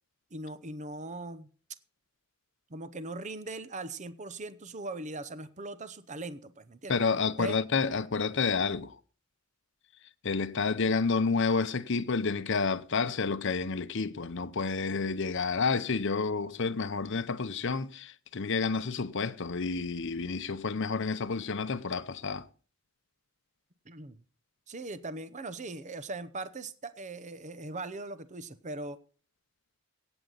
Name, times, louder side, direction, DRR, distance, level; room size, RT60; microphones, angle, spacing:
voice 1, 0.3-1.5 2.7-7.0 7.4-7.6 23.9-24.2 24.7-29.0, right 2 dB, 35° right, 0.8 m, -40 dB
voice 2, 6.9-8.9 10.2-22.5, left 4 dB, 55° left, 0.7 m, -30 dB
17.0 x 7.9 x 4.0 m
head